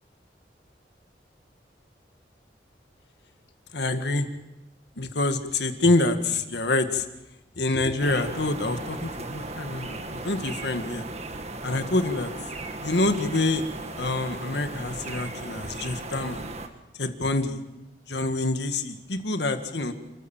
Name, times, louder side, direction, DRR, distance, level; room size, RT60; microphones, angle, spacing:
voice 1, 3.7-4.3 4.9-7.1 7.6-11.1 11.6-12.3 12.8-13.6 14.0-16.4 17.0-17.6 18.1-19.9, left 2 dB, 75° left, 7 dB, 1.8 m, -26 dB
sound 1, 8.0-16.7, right 2 dB, 35° right, 1.7 m, -36 dB
29.5 x 14.5 x 7.4 m, 0.93 s
head